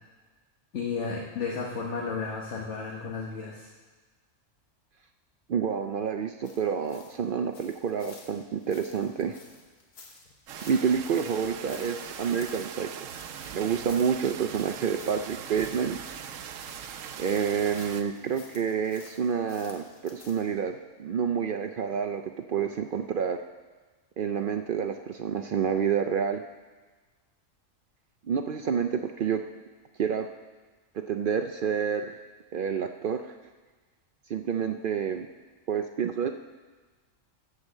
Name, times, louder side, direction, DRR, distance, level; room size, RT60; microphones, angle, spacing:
voice 1, 0.7-3.7, left 5 dB, 65° left, -2 dB, 1.4 m, -33 dB
voice 2, 5.5-9.4 10.7-13.1 13.5-16.0 17.2-23.4 24.2-26.4 28.2-29.4 30.0-30.3 31.1-32.1 32.5-33.3 34.3-35.3 35.7-36.3, right 7 dB, 60° right, 6 dB, 0.5 m, -28 dB
sound 1, 6.4-20.6, left 3 dB, 85° left, 1.7 m, -53 dB
sound 2, 10.5-18.0, right 8 dB, 85° right, 1.0 m, -41 dB
14.0 x 4.9 x 7.3 m, 1.3 s
omnidirectional pair, 1.3 m